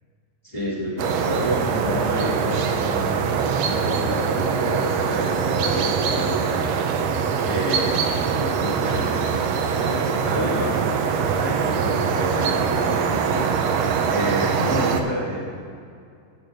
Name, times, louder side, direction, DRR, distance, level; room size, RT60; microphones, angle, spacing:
voice 1, 0.4-3.3 3.6-6.7 7.4-9.3 9.7-13.5 14.0-15.6, equal, 20° left, -6 dB, 1.2 m, -29 dB
sound 1, 1.0-15.0, right 6 dB, 90° right, 1.5 m, -23 dB
15.0 x 6.5 x 3.9 m, 2.4 s
omnidirectional pair, 3.9 m